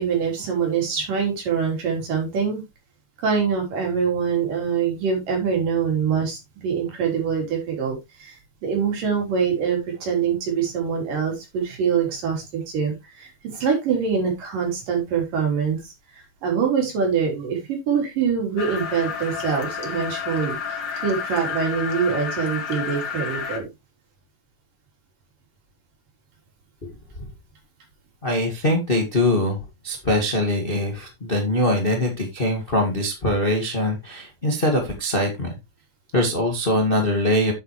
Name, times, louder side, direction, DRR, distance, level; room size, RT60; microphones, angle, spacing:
voice 1, 0.0-2.6 3.2-8.3 8.6-15.8 16.1-23.7, right 6 dB, 65° right, 1 dB, 5.2 m, -24 dB
sound 1, 18.6-23.6, left 6 dB, 50° left, 1.4 m, -30 dB
voice 2, 28.2-29.6 29.8-35.5 36.1-37.5, left 1 dB, 25° left, 2 dB, 1.1 m, -22 dB
9.4 x 8.1 x 3.1 m, 0.22 s
omnidirectional pair, 4.2 m